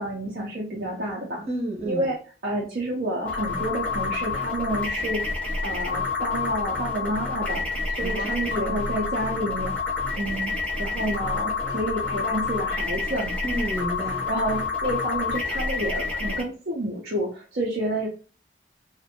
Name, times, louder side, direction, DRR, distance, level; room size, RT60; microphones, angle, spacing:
voice 1, 0.0-1.4 1.9-2.2 2.4-5.2 5.6-9.7 10.2-10.5 10.8-13.3 14.3-18.1, right 1 dB, 50° right, -3 dB, 0.5 m, -29 dB
voice 2, 1.5-2.1 8.0-8.8 13.4-14.3, right 1 dB, 35° right, -1 dB, 0.9 m, -31 dB
sound 1, 3.2-16.4, left 4 dB, 5° left, 0.6 m, -28 dB
2.5 x 2.1 x 2.7 m, 0.36 s
head